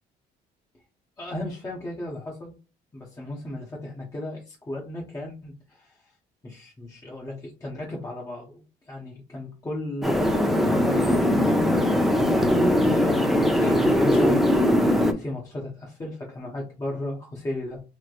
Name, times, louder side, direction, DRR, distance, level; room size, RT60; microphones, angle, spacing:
voice 1, 1.2-2.5 2.9-6.2 6.4-12.2 12.9-14.4 15.1-17.8, left 1 dB, 20° left, -3 dB, 1.0 m, -35 dB
sound 1, 10.0-15.1, left 1 dB, ahead, 0.6 m, -20 dB
3.2 x 3.0 x 2.4 m, 0.32 s
cardioid pair, 110°, 17 cm